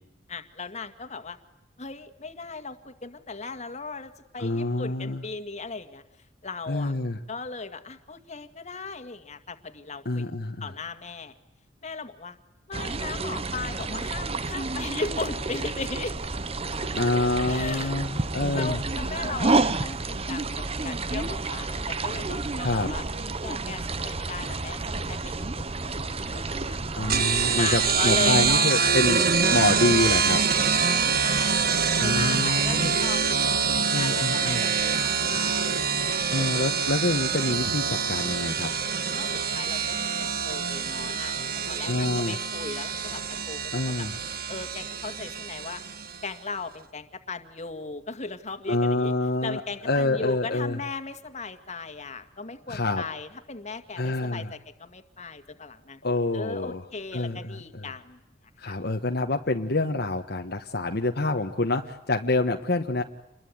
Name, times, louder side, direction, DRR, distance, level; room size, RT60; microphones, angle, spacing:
voice 1, 0.3-1.4 1.8-6.0 6.4-6.9 7.3-10.3 10.6-11.3 11.8-12.4 12.7-16.2 17.5-23.0 23.4-26.8 27.5-29.0 30.7-36.6 39.1-44.1 44.5-45.8 46.2-49.1 49.4-56.0 56.3-58.2 58.7-58.8, left 4 dB, 40° left, 8 dB, 2.0 m, -37 dB
voice 2, 4.4-5.2 6.7-7.2 10.0-10.7 16.9-18.8 22.6-22.9 26.9-29.2 29.5-30.4 32.0-32.9 33.9-34.6 36.3-38.7 41.9-42.4 43.7-44.1 48.7-50.8 52.7-53.0 54.0-54.5 56.0-56.8 57.1-57.8 58.6-63.0, left 2 dB, 60° left, 3 dB, 1.3 m, -27 dB
sound 1, 12.7-28.6, right 3 dB, 30° right, 1.0 m, -30 dB
sound 2, 27.1-46.2, right 6 dB, 55° right, 1.6 m, -25 dB
28.5 x 22.0 x 9.5 m, 0.90 s
head